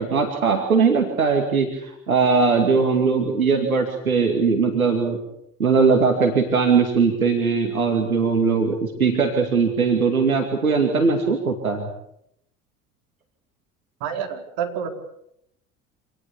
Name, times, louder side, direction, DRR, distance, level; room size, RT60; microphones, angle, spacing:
voice 1, 0.0-5.2 5.6-11.9, right 5 dB, 90° right, 4 dB, 2.5 m, -20 dB
voice 2, 14.0-14.9, right 8 dB, 60° right, 4 dB, 4.5 m, -28 dB
27.0 x 19.5 x 8.4 m, 0.77 s
figure-of-eight pair, 65°, 41 cm